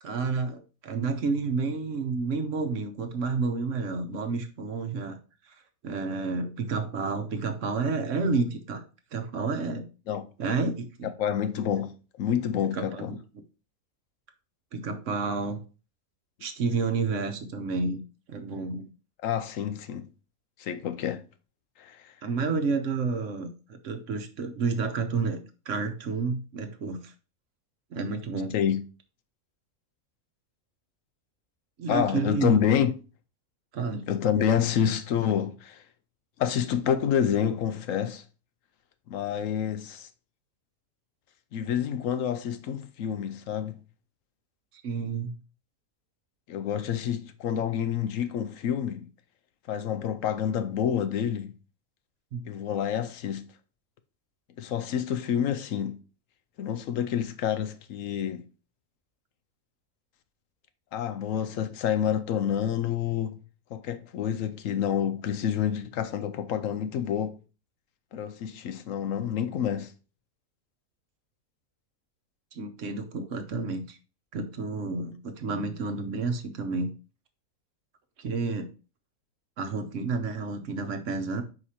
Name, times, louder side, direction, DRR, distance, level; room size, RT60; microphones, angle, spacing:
voice 1, 0.0-5.2 5.5-5.6 5.8-8.8 9.1-9.8 10.4-11.1 12.7-13.2 14.7-15.6 16.4-18.0 18.3-18.9 22.2-25.4 25.7-27.1 27.9-28.5 31.8-32.6 33.7-34.1 44.8-45.3 52.3-52.4 72.5-74.0 74.3-76.9 78.2-78.7 79.6-81.4, right 4 dB, 65° right, 1.1 m, -30 dB
voice 2, 11.0-13.1 19.2-20.1 20.6-21.2 21.8-22.1 28.5-28.8 31.9-32.9 34.1-35.8 36.4-38.2 39.1-40.1 41.5-43.8 46.5-49.1 49.7-51.5 52.5-53.4 54.6-56.0 56.6-58.5 60.9-63.4 63.7-67.4 68.1-69.9, left 9 dB, 75° left, 1.0 m, -28 dB
4.9 x 4.8 x 4.2 m
omnidirectional pair, 1.5 m